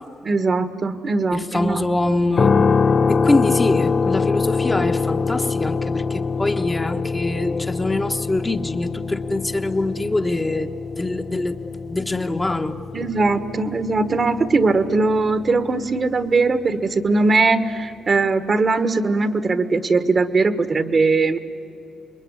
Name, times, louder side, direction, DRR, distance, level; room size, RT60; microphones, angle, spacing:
voice 1, 0.2-1.8 12.9-21.4, right 3 dB, 35° right, 11 dB, 1.4 m, -20 dB
voice 2, 1.3-2.6 3.1-10.7 11.0-11.6 11.9-12.8, left 2 dB, 15° left, 5 dB, 1.1 m, -24 dB
sound 1, 2.4-16.4, left 5 dB, 40° left, 0.7 m, -24 dB
27.0 x 22.0 x 9.8 m, 2.7 s
cardioid pair, 110°, 0 cm